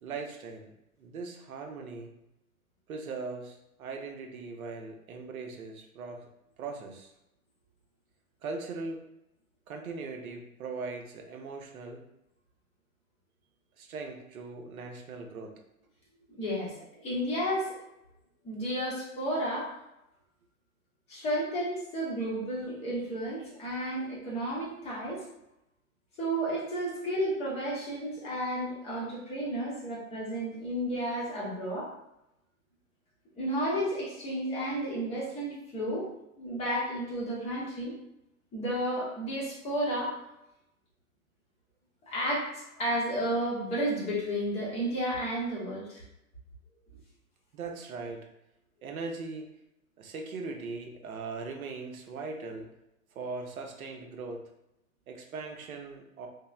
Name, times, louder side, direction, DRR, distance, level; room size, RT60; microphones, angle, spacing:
voice 1, 0.0-2.1 2.9-6.3 6.6-7.1 8.4-9.0 9.7-12.0 13.8-15.6 47.5-48.3 48.8-49.5 50.0-52.7 53.1-54.4 55.1-56.3, right 4 dB, 75° right, 3 dB, 0.6 m, -40 dB
voice 2, 16.4-17.8 18.4-19.7 21.1-25.2 26.2-31.9 33.4-36.1 36.4-37.9 38.5-40.1 42.1-46.0, equal, 15° left, -5 dB, 0.6 m, -32 dB
3.0 x 2.0 x 2.3 m, 0.85 s
hypercardioid pair, 120°, 43 cm